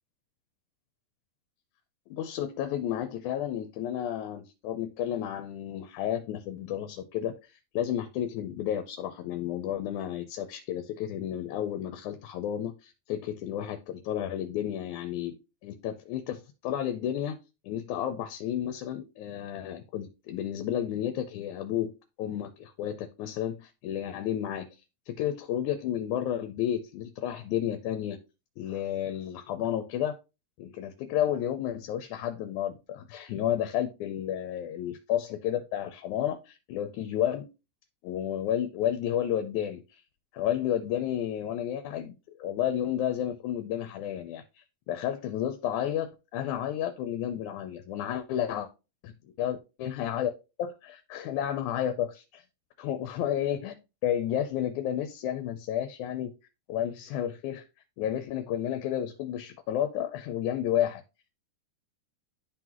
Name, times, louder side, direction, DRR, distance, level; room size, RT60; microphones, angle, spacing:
voice 1, 2.1-15.4 15.6-17.4 17.6-21.9 22.2-24.7 25.1-28.2 28.6-30.2 30.6-37.5 38.0-40.0 40.3-44.4 44.9-48.7 49.0-49.1 49.4-50.3 50.6-52.4 52.8-53.8 54.0-56.3 56.7-57.7 58.0-61.0, left 10 dB, 80° left, 9 dB, 2.1 m, -31 dB
11.5 x 3.9 x 3.0 m, 0.28 s
omnidirectional pair, 3.5 m